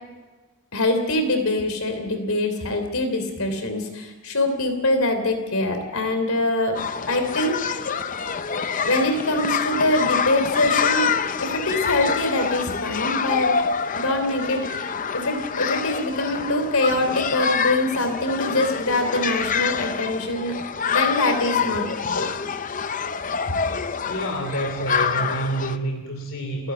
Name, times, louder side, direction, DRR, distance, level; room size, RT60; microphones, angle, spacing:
voice 1, 0.7-7.9 8.8-11.1 11.4-13.6 13.9-20.6 20.9-22.3 23.5-23.6, left 2 dB, 80° left, 7 dB, 3.3 m, -24 dB
sound 1, 6.7-25.8, left 6 dB, 35° left, 0.6 m, -26 dB
voice 2, 24.1-26.7, right 1 dB, 65° left, 3 dB, 2.8 m, -28 dB
29.5 x 11.5 x 7.9 m, 1.3 s
head